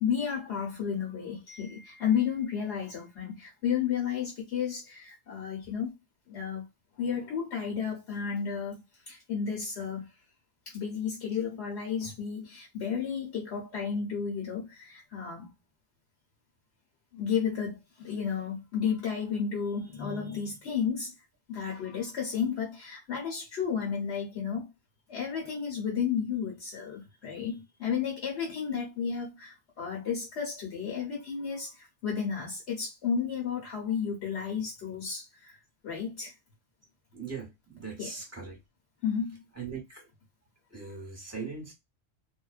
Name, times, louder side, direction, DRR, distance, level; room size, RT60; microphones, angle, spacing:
voice 1, 0.0-5.9 6.3-6.7 7.0-10.1 10.7-15.5 17.1-21.1 21.5-24.7 25.1-35.6 35.8-36.3 38.0-38.1 39.0-39.4, left 7 dB, 65° left, 1.0 m, -32 dB
voice 2, 37.1-38.6 39.6-40.1 40.7-41.7, right 5 dB, 15° right, 0.8 m, -40 dB
2.4 x 2.1 x 2.3 m
omnidirectional pair, 1.3 m